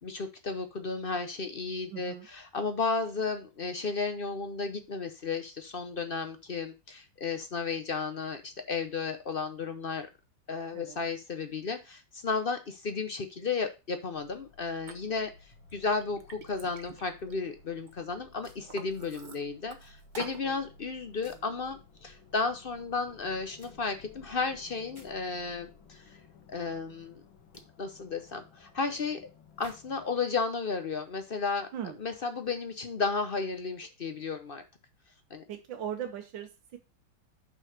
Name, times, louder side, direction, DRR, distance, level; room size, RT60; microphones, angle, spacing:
voice 1, 0.0-10.1 10.5-26.2 26.5-27.2 27.8-29.2 29.6-31.7 32.0-34.6 35.3-35.4, left 4 dB, 50° left, 8 dB, 0.6 m, -33 dB
voice 2, 1.9-2.3 10.7-11.1 20.4-20.6 21.3-21.4 31.7-32.0 35.5-36.8, right 9 dB, 80° right, 3 dB, 1.6 m, -39 dB
sound 1, 14.1-30.2, left 4 dB, 85° left, 2.0 m, -56 dB
Liquid, 14.9-15.0 15.5-17.9 18.3-19.8 20.1-20.4, right 4 dB, 35° right, 0.8 m, -46 dB
sound 2, 18.4-19.3 19.7-20.4 21.2-21.5 23.6-23.7 24.9-25.1 27.5-27.6 29.6-29.8, equal, 15° left, 2.1 m, -57 dB
5.9 x 5.5 x 5.8 m, 0.28 s
omnidirectional pair, 2.0 m